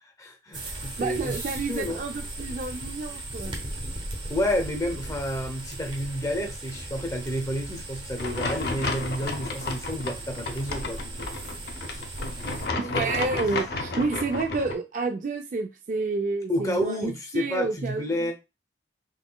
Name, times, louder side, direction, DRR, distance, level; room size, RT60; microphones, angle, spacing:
voice 1, 0.0-2.0 4.3-11.5 11.9-12.0 13.0-13.4 16.5-18.3, equal, 20° left, 0.6 m, -30 dB
sound 1, 0.5-12.7, right 1 dB, 25° right, 0.7 m, -37 dB
voice 2, 1.0-3.5 12.8-18.3, right 3 dB, 45° right, 0.3 m, -29 dB
sound 2, 8.2-14.7, left 3 dB, 55° left, 0.6 m, -32 dB
3.8 x 3.2 x 2.2 m
head